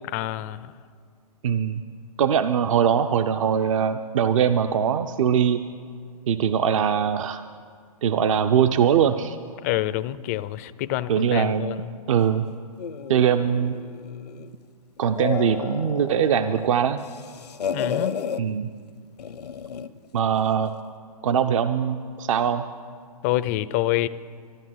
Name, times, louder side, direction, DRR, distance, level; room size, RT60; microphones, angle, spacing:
voice 1, 0.0-0.7 9.6-11.9 17.7-18.2 23.2-24.1, left 15 dB, 25° left, 15 dB, 0.4 m, -27 dB
voice 2, 1.4-1.8 2.2-5.6 6.3-7.4 8.0-9.4 11.1-11.7 12.1-12.5 13.1-13.7 15.0-17.0 18.4-18.7 20.1-20.7 21.2-22.6, right 8 dB, 55° right, 9 dB, 0.6 m, -21 dB
sound 1, 12.8-14.5 15.0-16.6 17.0-18.4 19.2-20.0, left 7 dB, 85° left, 0.7 m, -32 dB
13.5 x 11.0 x 7.7 m, 2.2 s
hypercardioid pair, 140°, 20 cm